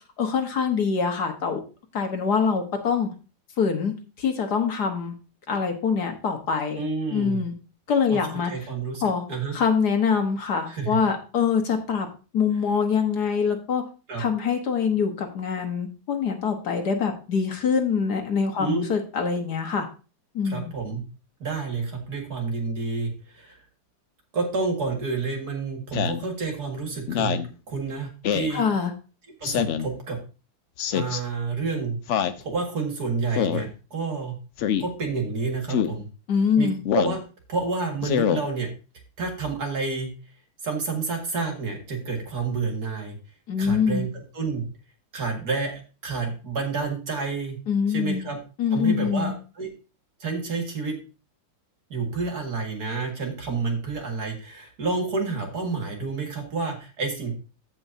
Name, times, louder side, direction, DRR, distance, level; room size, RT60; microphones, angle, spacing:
voice 1, 0.2-1.6 1.9-3.1 3.6-5.2 5.5-6.8 7.1-7.6 7.9-8.5 9.0-9.2 9.5-12.1 12.3-13.8 14.2-19.9 20.4-20.7 28.5-28.9 36.3-36.8 43.5-44.1 47.7-48.2 48.6-49.3, left 6 dB, 60° left, 4 dB, 1.8 m, -24 dB
voice 2, 6.8-7.4 8.1-9.0 9.3-9.6 10.7-11.0 14.1-14.2 18.6-18.8 20.4-21.0 21.4-23.6 24.3-27.4 27.7-28.6 29.4-30.2 30.9-32.0 32.4-34.4 34.8-36.1 36.6-37.2 37.5-38.7 39.2-40.1 40.6-43.2 43.6-44.7 45.1-45.7 46.0-47.6 47.9-48.4 48.7-49.7 50.2-51.0 51.9-57.3, right 4 dB, 55° right, 2 dB, 2.5 m, -29 dB
Speech synthesizer, 25.9-26.2 27.1-27.5 28.2-28.5 29.4-29.9 30.8-31.2 32.1-32.4 33.3-33.7 34.6-34.9 35.7-36.0 36.9-37.2 38.0-38.4, left 9 dB, 80° left, 0.6 m, -24 dB
15.0 x 5.5 x 2.7 m, 0.33 s
omnidirectional pair, 2.0 m